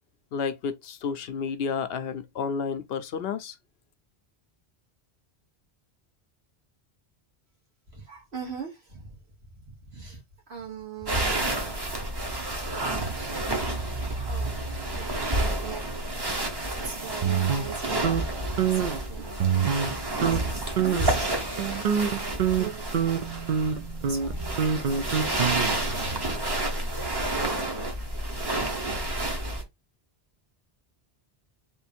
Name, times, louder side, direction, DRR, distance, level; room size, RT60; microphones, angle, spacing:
voice 1, 0.3-3.6, left 6 dB, 70° left, 0.8 m, -31 dB
voice 2, 7.9-9.2 9.6-10.2 10.5-11.7 12.0-12.1 13.0-13.5 14.1-23.1 23.7-25.0, right 6 dB, 75° right, 1.9 m, -42 dB
sound 1, 11.1-29.6, right 1 dB, 25° right, 0.8 m, -30 dB
sound 2, 17.2-18.2 18.6-19.0 19.4-19.9 20.2-20.4 20.8-21.2 21.6-25.9, right 7 dB, 55° right, 0.7 m, -26 dB
3.6 x 2.6 x 4.3 m
omnidirectional pair, 1.1 m